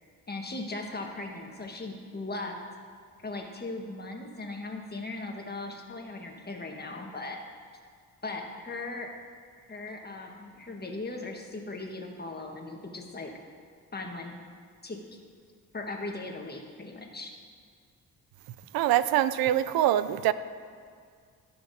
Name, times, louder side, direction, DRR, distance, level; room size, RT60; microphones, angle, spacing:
voice 1, 0.3-2.6 3.2-7.4 8.2-9.1 9.7-13.3 13.9-14.4 14.8-15.0 15.7-17.3, left 2 dB, 25° left, 2 dB, 1.4 m, -38 dB
voice 2, 18.7-20.3, right 12 dB, 75° right, 15 dB, 0.5 m, -24 dB
14.5 x 5.9 x 2.7 m, 2.2 s
supercardioid pair, 65°, 36 cm